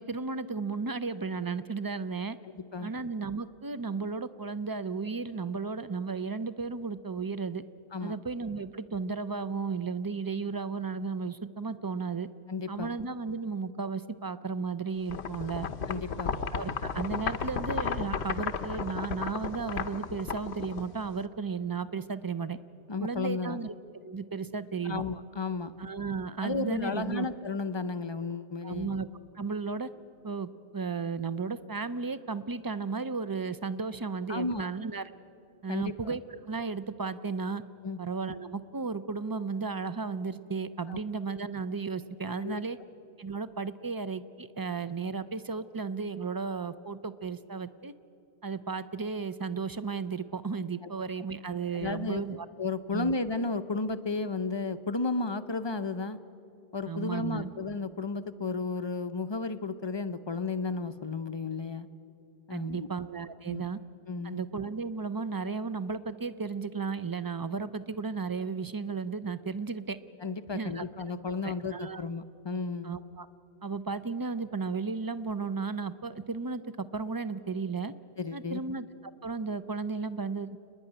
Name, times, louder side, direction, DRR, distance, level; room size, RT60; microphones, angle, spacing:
voice 1, 0.0-2.4 2.8-7.6 8.0-12.3 12.7-15.7 16.3-22.6 23.0-23.7 24.0-25.0 25.8-27.3 28.6-29.1 29.3-29.9 30.2-35.1 35.6-37.6 38.0-42.8 43.2-47.9 48.4-52.5 52.9-53.1 56.9-57.5 62.5-63.8 64.2-70.0 70.5-70.8 71.4-72.0 72.8-73.3 73.6-77.9 78.3-80.6, right 4 dB, 35° right, 14 dB, 0.3 m, -34 dB
voice 2, 2.5-2.9 7.9-8.2 12.5-12.9 15.9-16.3 22.9-23.6 24.8-25.7 26.4-28.9 34.3-34.7 35.7-36.2 37.8-38.0 40.9-41.0 42.4-42.6 50.8-50.9 51.7-52.2 52.6-56.2 56.7-61.9 62.5-62.9 63.5-63.7 64.1-64.4 70.2-72.9 78.2-78.6, left 3 dB, 35° left, 11 dB, 0.5 m, -33 dB
sound 1, 15.1-21.2, left 6 dB, 85° left, 1.1 m, -34 dB
29.0 x 10.5 x 9.9 m, 2.7 s
omnidirectional pair, 1.1 m